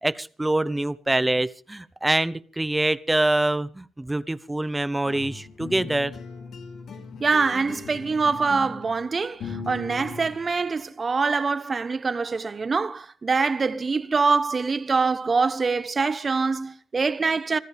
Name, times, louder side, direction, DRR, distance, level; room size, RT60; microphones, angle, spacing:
voice 1, 0.0-6.1, right 1 dB, 10° right, 0.9 m, -25 dB
sound 1, 5.0-10.7, left 4 dB, 65° left, 5.3 m, -39 dB
voice 2, 7.2-17.6, right 4 dB, 35° right, 1.1 m, -24 dB
25.5 x 14.5 x 3.5 m
cardioid pair, 90°, 0 cm